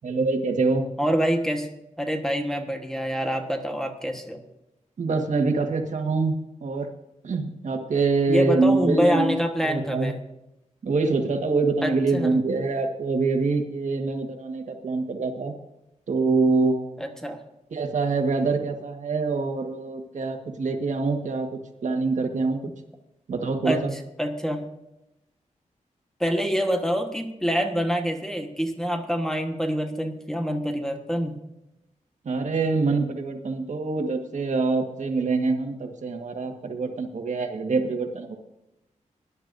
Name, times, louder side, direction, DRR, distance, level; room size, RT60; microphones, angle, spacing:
voice 1, 0.0-0.9 5.0-6.9 7.2-9.3 9.6-10.1 10.8-15.5 16.1-17.0 17.7-21.5 21.8-22.6 23.3-23.9 32.2-38.4, right 3 dB, 70° right, 4 dB, 1.6 m, -25 dB
voice 2, 1.0-1.7 2.0-4.4 8.3-10.2 11.8-12.3 17.0-17.4 23.6-23.9 24.2-24.6 26.2-31.4, equal, 5° left, 4 dB, 1.3 m, -26 dB
20.5 x 11.0 x 2.7 m, 0.89 s
wide cardioid pair, 130°, 13 cm